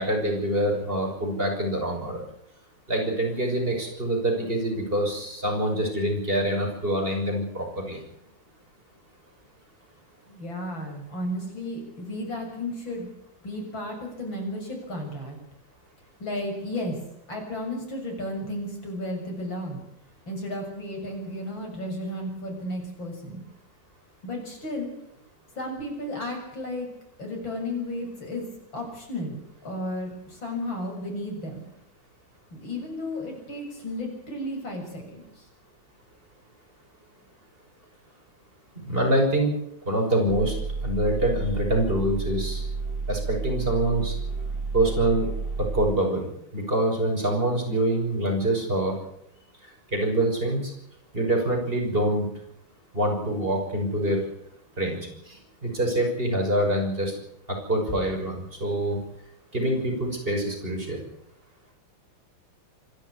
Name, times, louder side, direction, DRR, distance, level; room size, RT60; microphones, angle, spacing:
voice 1, 0.0-2.2 2.9-8.0 38.8-39.5 39.8-40.5 40.8-42.6 43.1-44.1 44.7-45.3 45.7-48.9 49.9-50.7 51.1-52.3 52.9-54.2 54.8-55.0 55.3-55.4 55.6-57.1 57.7-59.0 59.5-61.0, right 1 dB, 25° right, 1 dB, 6.5 m, -25 dB
voice 2, 10.3-13.1 13.4-15.4 16.2-17.0 17.3-19.8 20.3-23.4 24.2-24.9 25.6-26.9 27.2-28.5 28.7-31.6 32.5-35.5, left 1 dB, 80° left, 2 dB, 7.8 m, -33 dB
sound 1, 40.3-45.9, right 4 dB, 60° right, 1.8 m, -31 dB
26.0 x 12.0 x 9.9 m, 0.74 s
omnidirectional pair, 2.1 m